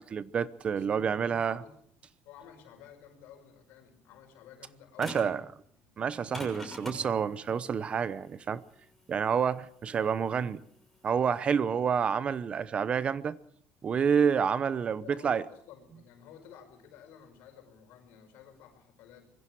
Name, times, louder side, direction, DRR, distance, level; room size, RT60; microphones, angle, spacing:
voice 1, 0.0-1.6 5.0-5.4 6.0-8.6 9.1-10.6 11.0-13.4 13.8-15.4, right 7 dB, 35° right, 0.8 m, -28 dB
voice 2, 0.8-1.8 2.2-5.9 15.0-19.3, left 8 dB, 75° left, 5.6 m, -53 dB
sound 1, 5.0-5.4 6.1-11.0, left 1 dB, 5° left, 6.4 m, -44 dB
25.0 x 22.0 x 4.7 m
cardioid pair, 135°, 4 cm